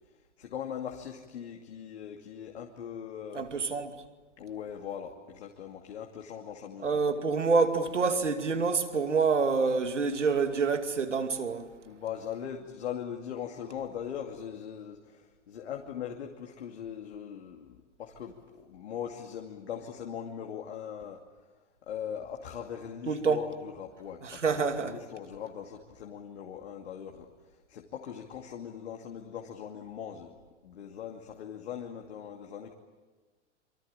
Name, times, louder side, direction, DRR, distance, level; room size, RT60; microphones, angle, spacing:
voice 1, 0.4-3.5 4.4-7.0 11.8-21.2 21.9-27.3 27.7-30.3 30.6-32.7, left 8 dB, 65° left, 2.6 m, -40 dB
voice 2, 3.3-3.9 6.8-11.7 23.1-23.4 24.2-24.9, right 4 dB, 80° right, 2.6 m, -27 dB
27.5 x 24.5 x 8.9 m
figure-of-eight pair, 105°, 36 cm